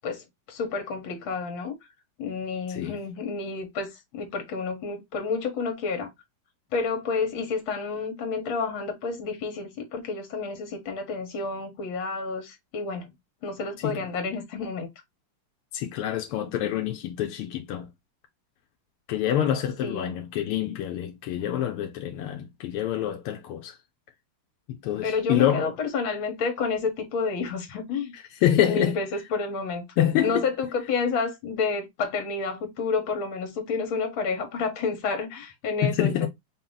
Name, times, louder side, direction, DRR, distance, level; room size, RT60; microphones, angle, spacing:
voice 1, 0.0-1.7 2.2-6.1 6.7-13.1 13.4-14.9 19.8-20.2 25.0-28.1 28.6-29.9 30.2-36.3, left 4 dB, 70° left, 1.9 m, -30 dB
voice 2, 15.7-17.9 19.1-23.8 24.7-25.7 28.4-29.0 30.0-30.4 35.8-36.3, left 11 dB, 90° left, 1.5 m, -26 dB
4.7 x 2.8 x 3.8 m
omnidirectional pair, 2.4 m